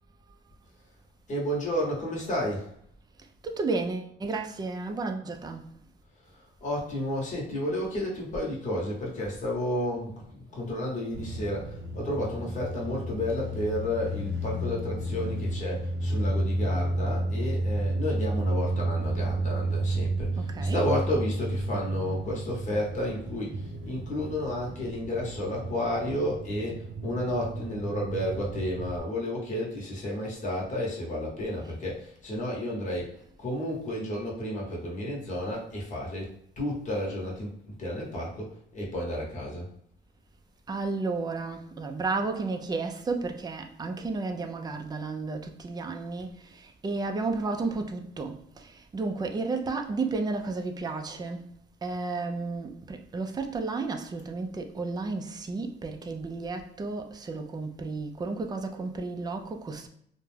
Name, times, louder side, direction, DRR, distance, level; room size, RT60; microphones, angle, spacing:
voice 1, 1.3-2.7 6.2-39.7, left 1 dB, 40° left, 0.9 m, -32 dB
voice 2, 3.2-5.7 20.4-20.9 40.7-51.4 51.8-59.9, right 3 dB, 20° right, 0.4 m, -32 dB
sound 1, 11.1-29.0, right 1 dB, 70° right, 0.6 m, -32 dB
2.3 x 2.1 x 3.2 m
cardioid pair, 90°, 20 cm